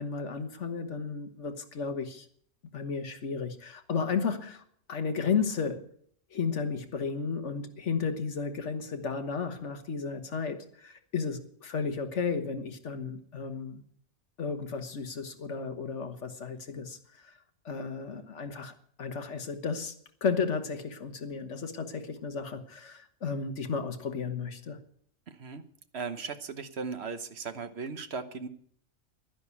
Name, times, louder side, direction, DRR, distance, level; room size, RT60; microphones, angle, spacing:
voice 1, 0.0-2.3 2.7-4.6 4.9-5.9 6.3-13.8 14.4-17.4 17.6-18.7 19.0-20.0 20.2-24.8, left 5 dB, 65° left, 1.6 m, -33 dB
voice 2, 25.3-25.6 25.9-28.5, right 5 dB, 55° right, 1.2 m, -37 dB
11.5 x 10.5 x 8.4 m
omnidirectional pair, 1.4 m